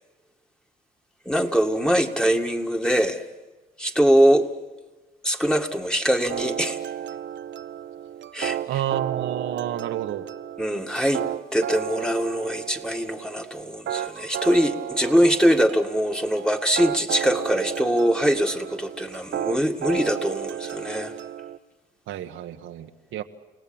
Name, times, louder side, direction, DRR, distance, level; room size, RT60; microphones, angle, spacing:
voice 1, 1.3-3.2 3.8-4.5 5.2-6.8 8.3-8.6 10.6-11.2 11.5-21.1, equal, 5° left, 4 dB, 1.9 m, -22 dB
sound 1, 6.3-21.6, right 10 dB, 70° right, 0.8 m, -33 dB
voice 2, 8.7-10.3 22.1-23.2, right 11 dB, 85° right, 6 dB, 1.4 m, -30 dB
29.5 x 17.5 x 8.9 m, 1.2 s
cardioid pair, 90°, 20 cm